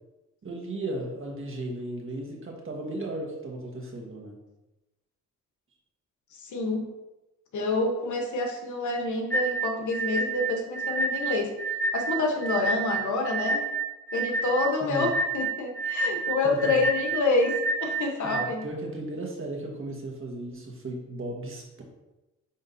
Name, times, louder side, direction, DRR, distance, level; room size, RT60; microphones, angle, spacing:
voice 1, 0.4-4.3 14.8-15.1 16.4-16.7 18.2-21.8, right 2 dB, 40° right, 0 dB, 1.5 m, -35 dB
voice 2, 6.4-6.8 7.5-11.5 11.9-13.6 14.1-17.5 17.8-18.6, left 3 dB, 70° left, 2 dB, 1.3 m, -27 dB
sound 1, 9.3-18.4, right 3 dB, 5° left, 0.8 m, -29 dB
9.6 x 3.6 x 2.8 m, 1.0 s
cardioid pair, 95°, 31 cm